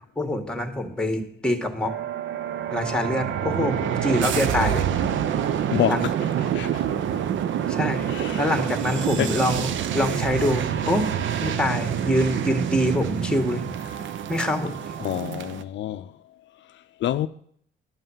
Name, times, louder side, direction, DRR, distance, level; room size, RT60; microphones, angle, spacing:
voice 1, 0.2-1.9 2.7-4.9 5.9-6.1 7.7-11.1 11.4-13.6 14.3-14.8, left 1 dB, 5° left, 1.8 m, -25 dB
sound 1, 1.8-15.6, right 9 dB, 75° right, 0.7 m, -27 dB
voice 2, 5.7-6.1 6.5-6.8 8.1-8.4 9.2-9.3 15.0-16.1 17.0-17.3, left 12 dB, 70° left, 0.5 m, -26 dB
11.5 x 5.5 x 7.4 m
cardioid pair, 90°, 20 cm